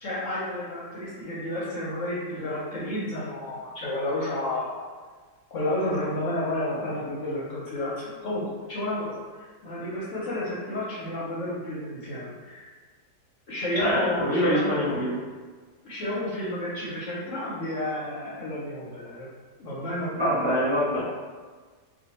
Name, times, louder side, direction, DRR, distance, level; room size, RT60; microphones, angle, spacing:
voice 1, 0.0-4.8 5.5-12.7 13.5-15.0 15.8-19.3 19.6-20.1, left 1 dB, 60° left, -7 dB, 0.9 m, -31 dB
voice 2, 13.7-15.2 20.1-21.0, equal, 20° right, -11 dB, 1.1 m, -25 dB
2.6 x 2.4 x 4.1 m, 1.5 s
omnidirectional pair, 1.8 m